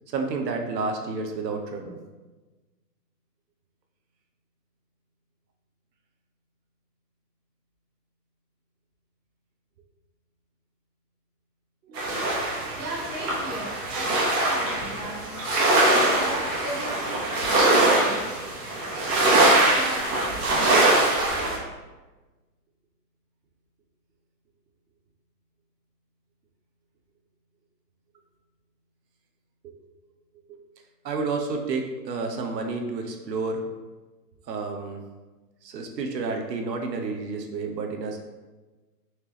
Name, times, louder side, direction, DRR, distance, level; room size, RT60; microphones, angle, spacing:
voice 1, 0.1-2.0 11.8-12.9 13.6-13.7 29.6-29.7 30.5-30.6 31.0-33.6 34.5-35.0 35.6-38.2, right 4 dB, 80° right, 3 dB, 0.9 m, -31 dB
sound 1, 11.9-21.6, right 2 dB, 40° right, 1.1 m, -22 dB
voice 2, 12.8-15.4 16.1-18.3 18.8-20.6, right 1 dB, 20° right, -6 dB, 0.5 m, -37 dB
4.3 x 3.4 x 2.9 m, 1.2 s
hypercardioid pair, 155°, 49 cm